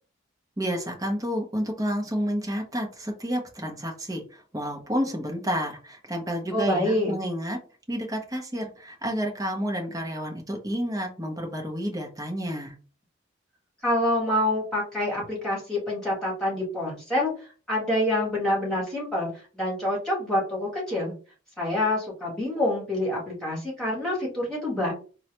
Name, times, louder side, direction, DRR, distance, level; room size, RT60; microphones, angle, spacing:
voice 1, 0.6-7.6 7.9-12.7, equal, 15° right, 1 dB, 0.7 m, -30 dB
voice 2, 6.5-7.1 13.8-21.1 21.6-24.9, left 1 dB, 5° left, -6 dB, 1.7 m, -27 dB
3.8 x 2.2 x 2.9 m, 0.38 s
head